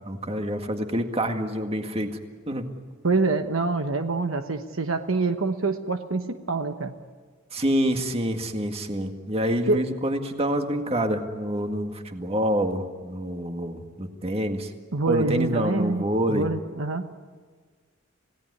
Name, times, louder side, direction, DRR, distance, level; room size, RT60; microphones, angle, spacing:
voice 1, 0.1-2.2 2.5-2.7 7.5-14.7 15.1-16.5, equal, 30° right, 5 dB, 1.9 m, -27 dB
voice 2, 3.0-6.9 9.7-9.9 14.9-17.1, right 3 dB, 70° right, 7 dB, 1.1 m, -26 dB
27.5 x 17.5 x 9.8 m, 1.5 s
head